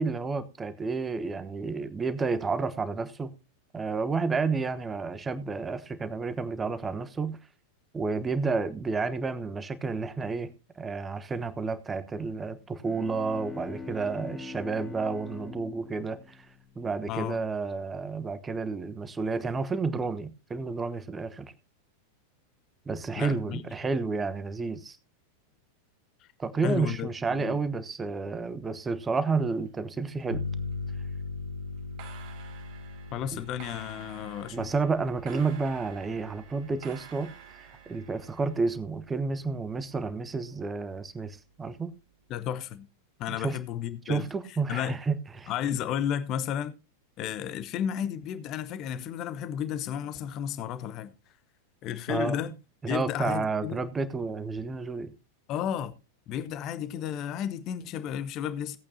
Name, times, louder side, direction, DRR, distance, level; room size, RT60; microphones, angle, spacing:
voice 1, 0.0-3.3 3.7-7.4 7.9-10.5 10.8-16.5 16.8-21.5 22.9-25.0 26.4-30.4 33.3-33.4 34.5-41.9 43.4-43.6 44.1-45.5 52.1-52.5 52.8-55.1, right 4 dB, 15° right, 1.1 m, -31 dB
Bowed string instrument, 12.6-17.4, left 4 dB, 5° left, 2.3 m, -43 dB
voice 2, 17.1-17.4 23.2-23.6 26.2-26.3 26.6-27.6 33.1-34.7 42.3-42.9 43.2-44.3 44.7-45.0 45.5-46.8 47.2-51.1 51.8-52.5 52.9-53.8 55.5-55.9 56.3-58.8, left 9 dB, 35° left, 0.8 m, -33 dB
sound 1, 29.3-30.2 30.5-30.9 31.8-38.6, right 8 dB, 45° right, 2.3 m, -51 dB
sound 2, 30.3-39.6, left 3 dB, 85° right, 1.0 m, -41 dB
17.5 x 8.7 x 2.8 m
figure-of-eight pair, 90°, 0 cm